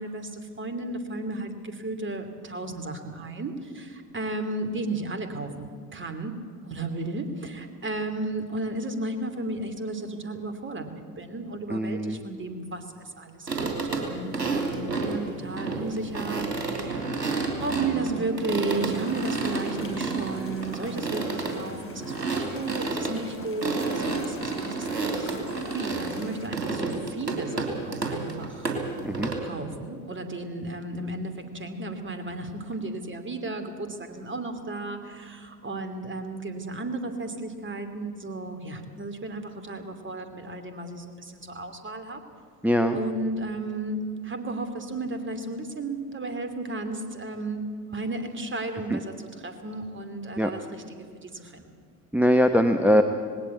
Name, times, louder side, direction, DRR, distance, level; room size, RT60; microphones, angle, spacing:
voice 1, 0.0-6.3 6.6-17.1 17.6-25.5 25.7-28.7 29.4-42.2 42.9-49.1 49.4-51.9, right 2 dB, 25° right, 8 dB, 2.7 m, -34 dB
voice 2, 11.7-12.2 29.0-29.3 42.6-43.0 48.9-49.0 50.4-50.5 52.1-53.0, equal, 5° right, 6 dB, 1.0 m, -21 dB
sound 1, 13.5-29.3, right 3 dB, 85° right, 2.9 m, -30 dB
sound 2, 18.7-26.5, left 3 dB, 25° left, 3.8 m, -45 dB
19.0 x 17.5 x 8.4 m, 2.2 s
figure-of-eight pair, 65°, 48 cm